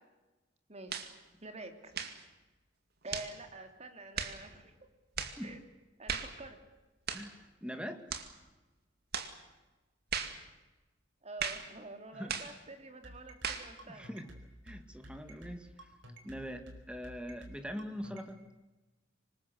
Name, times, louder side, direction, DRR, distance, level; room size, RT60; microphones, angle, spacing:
voice 1, 0.7-1.0 1.4-1.9 3.0-4.8 5.4-5.6 6.0-6.6 11.2-14.1, right 2 dB, 35° right, 6 dB, 3.1 m, -47 dB
sound 1, 0.9-1.1 1.9-2.2 3.1-3.3 4.2-4.4 5.2-5.4 6.1-6.4 7.1-7.3 8.1-8.3 9.1-9.4 10.1-10.4 11.4-11.7 12.3-12.6 13.4-13.7, right 7 dB, 55° right, 2.3 m, -37 dB
voice 2, 5.2-5.6 7.1-8.0 12.1-12.4 13.9-14.3 14.6-15.9 16.2-18.4, equal, 5° right, 7 dB, 2.0 m, -43 dB
sound 2, 13.0-18.3, equal, 75° right, 4.6 m, -51 dB
25.5 x 21.0 x 8.0 m, 1.1 s
head